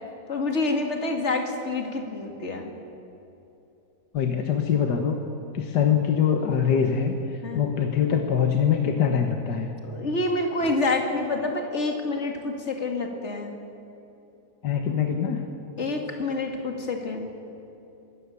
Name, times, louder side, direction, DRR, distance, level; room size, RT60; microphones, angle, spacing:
voice 1, 0.3-2.7 7.4-7.6 9.8-13.5 15.8-17.3, left 2 dB, 35° left, 3 dB, 2.5 m, -27 dB
voice 2, 4.1-5.2 5.5-7.1 7.5-9.7 14.6-15.4, left 7 dB, 65° left, 4 dB, 1.7 m, -23 dB
23.5 x 14.5 x 8.4 m, 2.9 s
omnidirectional pair, 2.0 m